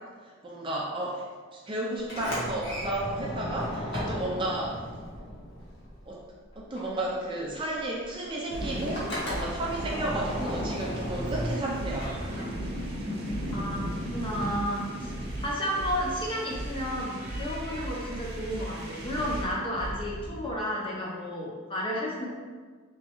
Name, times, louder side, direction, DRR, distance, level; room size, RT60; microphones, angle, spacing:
voice 1, 0.4-1.2 1.5-4.8 6.1-6.2 6.6-12.1, right 1 dB, 25° right, -3 dB, 0.4 m, -32 dB
Sliding door, 2.0-6.3 6.5-12.9, equal, 55° left, 1.2 m, -36 dB
sound 1, 8.5-19.4, equal, 50° right, 0.8 m, -38 dB
sound 2, 8.5-20.5, right 1 dB, 85° right, 0.6 m, -39 dB
voice 2, 13.5-15.1 15.4-22.3, equal, 25° left, -4 dB, 0.7 m, -32 dB
3.5 x 3.1 x 3.0 m, 1.5 s
head